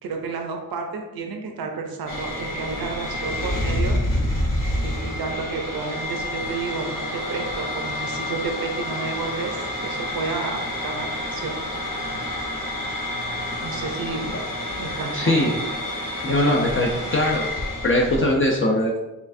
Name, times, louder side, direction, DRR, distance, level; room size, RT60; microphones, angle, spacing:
voice 1, 0.0-4.0 4.8-11.5 13.6-14.3 14.8-15.2 15.4-15.5 16.3-16.6, right 4 dB, 85° right, 3 dB, 0.6 m, -31 dB
sound 1, 2.1-18.4, left 1 dB, 65° left, 1.0 m, -28 dB
voice 2, 15.1-15.5 16.2-17.5 17.8-19.0, left 1 dB, 35° left, -1 dB, 0.5 m, -21 dB
4.4 x 3.3 x 2.5 m, 1.0 s
wide cardioid pair, 90°, 35 cm